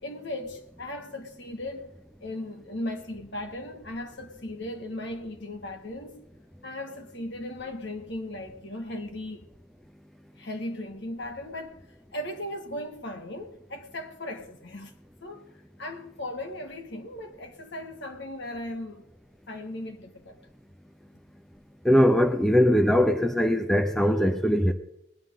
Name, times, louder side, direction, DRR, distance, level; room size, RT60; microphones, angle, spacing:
voice 1, 0.0-1.9 2.2-6.3 6.6-9.5 10.4-11.8 12.1-14.9 15.2-15.5 15.8-19.0 19.5-20.4, left 1 dB, 55° left, 1.8 m, -37 dB
voice 2, 21.8-24.7, equal, ahead, 0.6 m, -21 dB
20.5 x 11.0 x 3.8 m
head